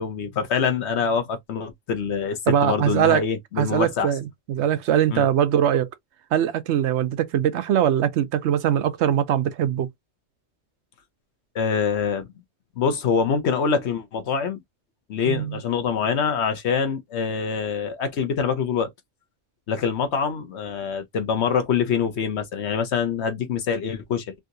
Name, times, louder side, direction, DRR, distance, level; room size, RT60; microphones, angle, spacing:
voice 1, 0.0-4.1 5.1-5.3 11.5-12.3 12.8-14.6 15.1-18.9 19.7-24.3, left 6 dB, 65° left, 1.0 m, -25 dB
voice 2, 2.5-3.2 3.6-5.9 6.3-9.9 15.3-15.6, right 10 dB, 70° right, 0.8 m, -22 dB
3.5 x 2.8 x 2.5 m
omnidirectional pair, 1.3 m